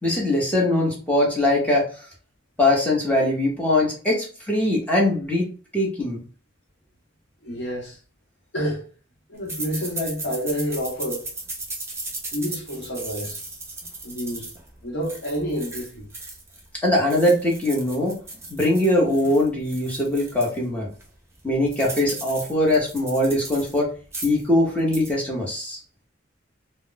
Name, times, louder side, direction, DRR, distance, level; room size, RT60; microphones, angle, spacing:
voice 1, 0.0-1.9 2.6-6.2 16.8-18.1 18.5-20.9 21.4-23.9 24.2-25.8, left 1 dB, 5° left, 0.9 m, -21 dB
voice 2, 7.4-8.0 8.5-8.9 9.3-11.3 12.3-13.4 14.0-14.5 14.8-16.1, equal, 65° left, 0.9 m, -29 dB
sound 1, 9.5-16.6 17.0-20.6 21.0-21.1 21.3-23.8 24.0-24.5 24.8-25.1, right 2 dB, 15° right, 0.6 m, -36 dB
2.3 x 2.1 x 3.7 m
head